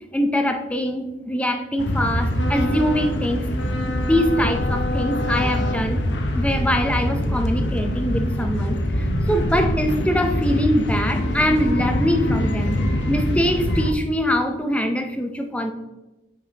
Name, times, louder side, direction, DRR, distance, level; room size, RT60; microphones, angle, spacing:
voice 1, 0.1-3.4 3.9-6.0 6.4-12.8 13.1-15.7, equal, 5° left, 6 dB, 0.5 m, -23 dB
sound 1, 1.8-13.9, left 1 dB, 75° left, 0.8 m, -24 dB
8.2 x 5.2 x 2.9 m, 1.0 s
head